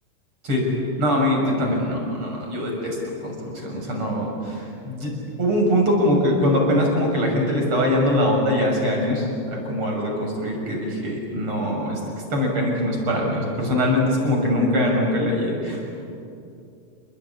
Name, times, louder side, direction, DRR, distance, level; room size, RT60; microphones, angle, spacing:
voice 1, 1.0-3.0 3.2-5.1 5.4-12.0 12.3-15.9, left 1 dB, 45° right, 0 dB, 7.5 m, -22 dB
28.5 x 21.0 x 10.0 m, 2.6 s
omnidirectional pair, 3.4 m